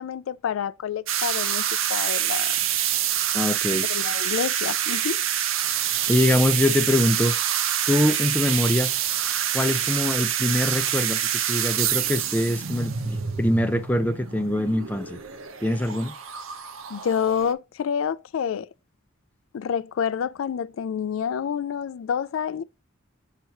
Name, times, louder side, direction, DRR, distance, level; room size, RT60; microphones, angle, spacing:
voice 1, 0.0-1.6 1.9-2.5 3.9-5.2 16.9-18.7 19.5-22.6, left 7 dB, 85° left, 0.4 m, -28 dB
sound 1, 1.1-17.5, right 10 dB, 85° right, 0.7 m, -26 dB
voice 2, 3.3-3.9 6.1-7.3 7.9-8.9 9.5-15.2 15.6-16.1, left 1 dB, 10° left, 0.5 m, -23 dB
6.6 x 3.0 x 5.7 m
head